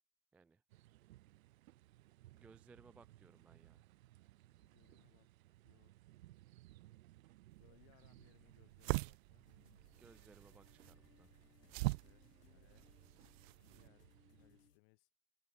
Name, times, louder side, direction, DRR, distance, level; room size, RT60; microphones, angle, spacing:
voice 1, 0.3-0.6 0.9-1.0 2.3-3.9 9.9-11.3, right 4 dB, 5° right, 0.3 m, -64 dB
sound 1, 0.7-14.7, right 16 dB, 60° right, 1.2 m, -64 dB
voice 2, 4.6-5.3 5.6-5.9 7.6-9.5 12.0-12.9 13.7-15.1, left 37 dB, 45° left, 6.7 m, -71 dB
sound 2, 7.5-13.9, right 26 dB, 40° right, 0.8 m, -44 dB
sound 3, 9.5-14.8, left 7 dB, 90° left, 3.0 m, -69 dB
hypercardioid pair, 115°, 47 cm